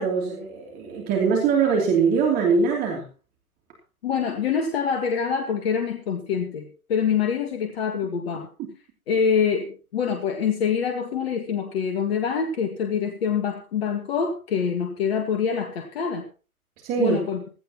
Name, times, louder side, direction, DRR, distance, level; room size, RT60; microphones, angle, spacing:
voice 1, 0.0-3.0 16.8-17.2, right 5 dB, 20° right, 0 dB, 3.1 m, -22 dB
voice 2, 4.0-8.5 9.1-16.3 17.0-17.4, left 7 dB, 45° left, 5 dB, 1.9 m, -25 dB
16.5 x 15.0 x 3.0 m, 0.35 s
figure-of-eight pair, 130°, 44 cm